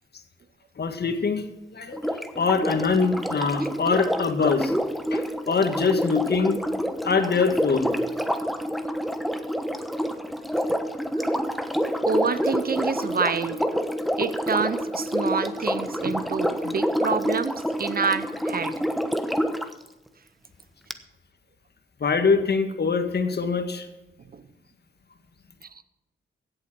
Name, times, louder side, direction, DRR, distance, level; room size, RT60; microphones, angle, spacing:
voice 1, 0.8-1.5 1.7-4.7 5.1-6.6 7.0-8.0 22.0-23.9, left 5 dB, 55° left, 7 dB, 1.8 m, -23 dB
Sink (filling or washing), 1.9-19.7 20.9-21.0, equal, ahead, 1.1 m, -28 dB
voice 2, 12.1-13.6 14.2-18.7 24.3-24.4, right 5 dB, 45° right, 14 dB, 0.8 m, -27 dB
15.5 x 7.8 x 6.0 m, 1.0 s
cardioid pair, 55°, 21 cm